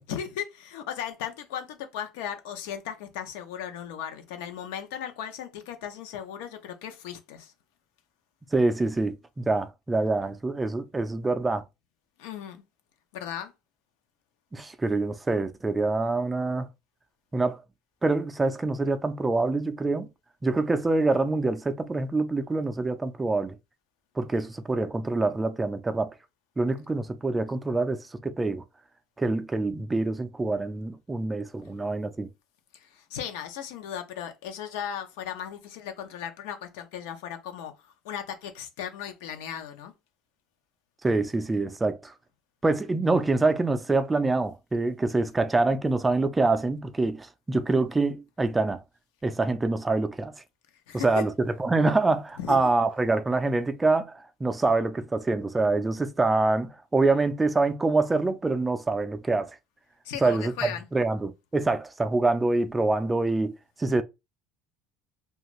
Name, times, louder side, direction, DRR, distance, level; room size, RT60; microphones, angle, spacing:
voice 1, 0.1-7.5 12.2-12.6 13.1-13.5 32.7-39.9 50.9-51.2 52.4-52.6 60.0-60.9, left 9 dB, 85° left, 0.6 m, -36 dB
voice 2, 8.5-11.6 14.5-16.7 17.3-17.6 18.0-20.1 20.4-23.6 24.2-26.1 26.6-28.6 29.2-32.3 41.0-42.1 42.6-48.8 49.2-50.3 50.9-59.5 60.2-60.5 60.9-64.0, right 3 dB, 10° right, 0.3 m, -25 dB
2.5 x 2.3 x 3.0 m
cardioid pair, 135°, 0 cm